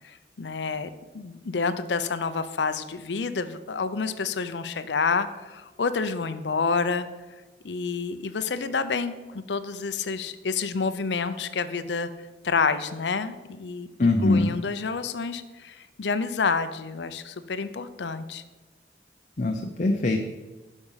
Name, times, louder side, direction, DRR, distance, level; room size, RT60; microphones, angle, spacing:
voice 1, 0.0-0.9 1.1-7.1 7.6-12.1 12.4-13.9 14.2-18.4, left 4 dB, 85° left, 12 dB, 0.6 m, -28 dB
voice 2, 14.0-14.5 19.4-20.2, left 2 dB, 45° left, 3 dB, 0.7 m, -22 dB
12.0 x 5.4 x 5.6 m, 1.2 s
head